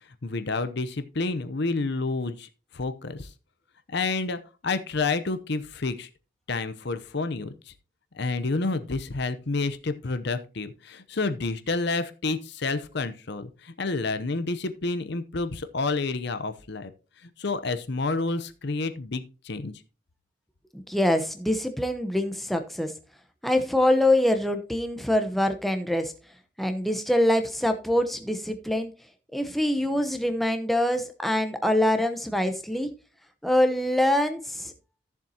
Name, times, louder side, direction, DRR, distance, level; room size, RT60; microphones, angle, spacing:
voice 1, 0.2-3.3 3.9-6.1 6.5-7.7 8.1-16.9 17.2-19.7, left 3 dB, 55° left, 11 dB, 0.7 m, -29 dB
voice 2, 20.7-22.9 23.4-26.1 26.6-28.9 29.3-32.9 33.4-34.7, left 1 dB, ahead, 6 dB, 0.8 m, -24 dB
14.0 x 7.2 x 2.8 m, 0.33 s
head